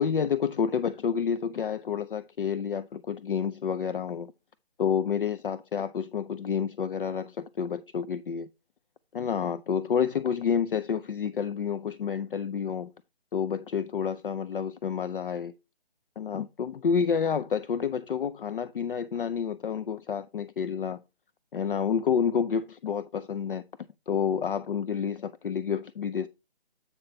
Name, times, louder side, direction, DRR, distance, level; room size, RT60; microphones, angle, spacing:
voice 1, 0.0-4.3 4.8-8.5 9.1-12.9 13.3-15.5 16.2-21.0 21.5-23.6 24.1-26.3, left 7 dB, 60° left, 0.5 m, -29 dB
8.1 x 5.6 x 3.3 m
hypercardioid pair, 170°, 31 cm